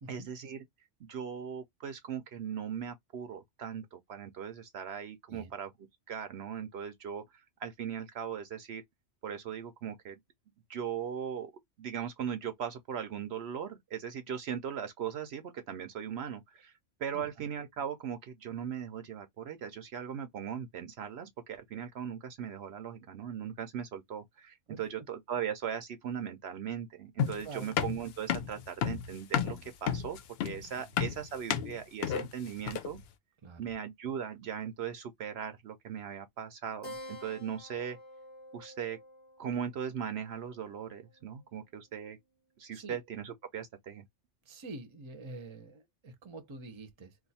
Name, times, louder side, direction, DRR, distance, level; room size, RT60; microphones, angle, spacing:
voice 1, 0.1-0.6 1.0-5.7 6.1-7.2 7.6-8.8 9.2-10.2 10.7-11.5 11.8-16.7 17.0-33.0 33.6-38.0 38.5-39.0 39.4-42.2 42.6-44.0, right 8 dB, 70° right, 0.8 m, -39 dB
sound 1, 27.2-33.0, left 8 dB, 65° left, 0.7 m, -32 dB
voice 2, 27.4-27.8 30.8-30.9 33.4-33.7 42.7-43.0 44.4-47.2, right 3 dB, 30° right, 0.7 m, -46 dB
Keyboard (musical), 36.8-41.8, left 1 dB, 30° left, 0.7 m, -50 dB
2.5 x 2.4 x 4.0 m
omnidirectional pair, 1.2 m